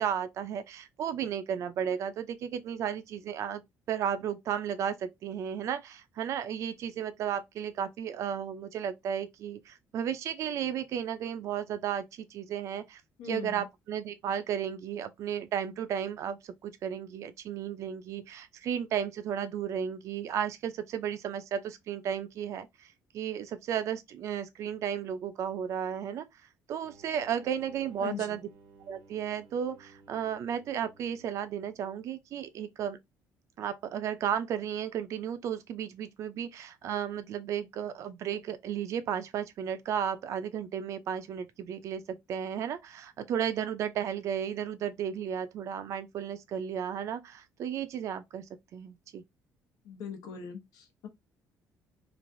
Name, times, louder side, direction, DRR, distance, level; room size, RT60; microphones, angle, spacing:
voice 1, 0.0-3.6 3.9-13.0 13.3-22.7 23.1-26.3 26.7-28.4 28.9-33.0 33.6-48.4 48.7-49.2, right 9 dB, 55° right, 0.4 m, -34 dB
voice 2, 13.2-13.7 28.0-28.5 49.8-51.1, left 7 dB, 85° left, 0.9 m, -40 dB
sound 1, 26.8-32.2, right 4 dB, 80° right, 0.8 m, -57 dB
3.1 x 2.5 x 2.6 m
cardioid pair, 160°, 6 cm